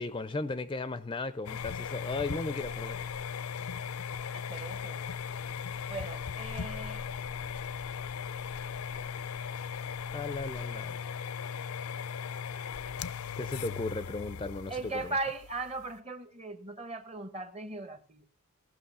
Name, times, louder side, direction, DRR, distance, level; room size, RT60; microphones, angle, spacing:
voice 1, 0.0-3.1 10.1-11.0 13.4-15.2, left 3 dB, 20° left, 0.4 m, -36 dB
sound 1, 1.5-16.0, left 7 dB, 75° left, 0.5 m, -38 dB
voice 2, 4.3-5.0 5.9-7.2 14.7-18.2, right 3 dB, 30° right, 1.0 m, -38 dB
17.5 x 6.1 x 5.5 m
head